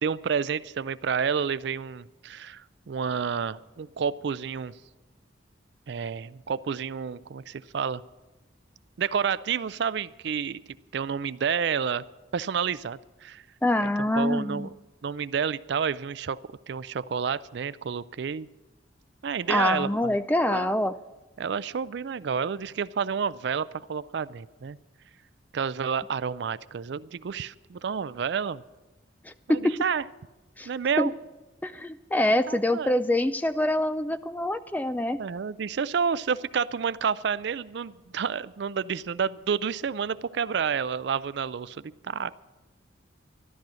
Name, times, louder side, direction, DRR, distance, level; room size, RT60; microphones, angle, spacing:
voice 1, 0.0-4.7 5.9-8.0 9.0-10.6 10.9-12.0 12.3-13.4 13.8-14.7 15.0-16.4 16.7-18.5 19.2-20.2 20.5-20.8 21.4-24.8 25.5-28.6 29.5-30.0 30.7-31.1 32.5-33.0 35.2-42.4, right 6 dB, 60° right, 17 dB, 0.4 m, -30 dB
voice 2, 13.6-14.7 19.5-20.9 29.3-29.8 30.6-30.7 31.0-31.1 31.6-35.2, left 1 dB, 10° left, 12 dB, 0.3 m, -25 dB
13.5 x 12.0 x 6.2 m, 1.1 s
head